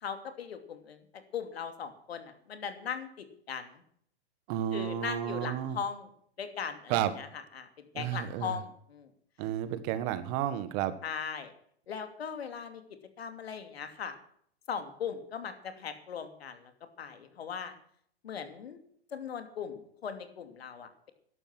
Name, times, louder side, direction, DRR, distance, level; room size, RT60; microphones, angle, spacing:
voice 1, 0.0-3.8 4.7-6.1 6.4-7.7 7.9-9.1 11.0-11.5 11.9-12.8 13.2-14.2 14.7-16.7 17.0-17.7 18.2-18.8 19.1-21.1, left 7 dB, 75° left, 8 dB, 2.7 m, -39 dB
voice 2, 4.5-5.8 6.9-7.1 7.9-8.6 9.4-10.9, right 11 dB, 40° right, 13 dB, 1.6 m, -32 dB
13.0 x 11.5 x 6.1 m, 0.63 s
hypercardioid pair, 120°, 31 cm